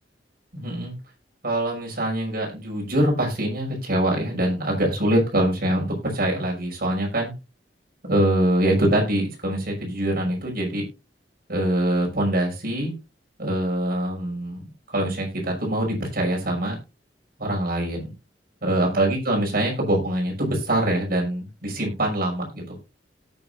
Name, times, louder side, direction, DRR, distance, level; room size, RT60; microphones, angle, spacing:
voice 1, 0.5-0.9 1.4-7.3 8.1-10.8 11.5-12.9 13.4-14.6 14.9-16.8 17.4-18.1 18.6-22.8, right 1 dB, 55° right, -1 dB, 6.0 m, -24 dB
18.0 x 7.3 x 2.6 m, 0.27 s
head